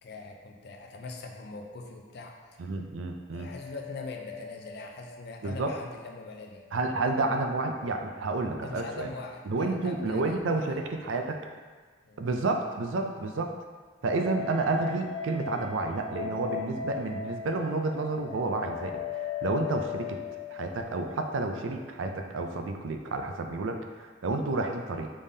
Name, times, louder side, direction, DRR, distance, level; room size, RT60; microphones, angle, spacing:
voice 1, 0.0-2.6 3.3-6.6 8.6-11.1 12.0-12.2, left 3 dB, 60° left, 2 dB, 0.5 m, -42 dB
voice 2, 2.6-3.5 5.4-5.7 6.7-9.1 9.5-11.4 12.2-13.5 14.0-20.2 20.5-25.1, right 3 dB, 85° right, 4 dB, 0.4 m, -30 dB
sound 1, 3.3-6.5 6.8-6.9 14.1-22.0, left 7 dB, 5° left, 1.0 m, -39 dB
5.2 x 3.4 x 2.7 m, 1.5 s
head